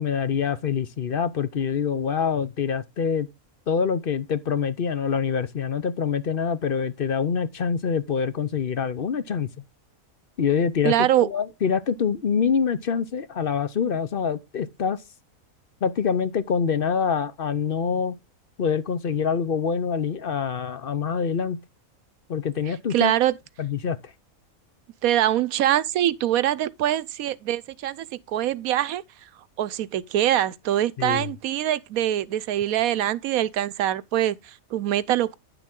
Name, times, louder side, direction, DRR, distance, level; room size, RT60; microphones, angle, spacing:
voice 1, 0.0-3.3 3.7-9.5 10.4-15.0 15.8-18.2 18.6-21.6 22.3-23.1 23.6-24.1 31.0-31.3, left 6 dB, 50° left, 0.8 m, -25 dB
voice 2, 10.8-11.3 22.7-23.3 25.0-29.3 29.6-35.4, right 12 dB, 85° right, 1.1 m, -24 dB
10.0 x 6.9 x 3.7 m
omnidirectional pair, 1.5 m